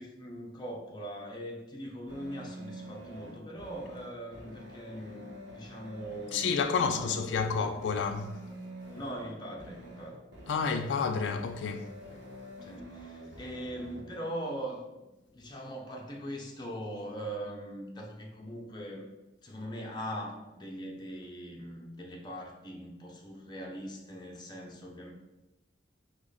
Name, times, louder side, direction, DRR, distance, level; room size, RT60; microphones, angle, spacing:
voice 1, 0.0-6.6 6.8-7.6 8.9-10.2 12.6-14.9 15.3-19.1 19.4-25.1, equal, 25° left, 0.7 m, -41 dB
sound 1, 2.1-14.1, equal, 90° right, 1.1 m, -47 dB
voice 2, 6.3-8.4 10.5-11.9, left 5 dB, 85° left, 0.3 m, -30 dB
3.7 x 3.2 x 3.9 m
head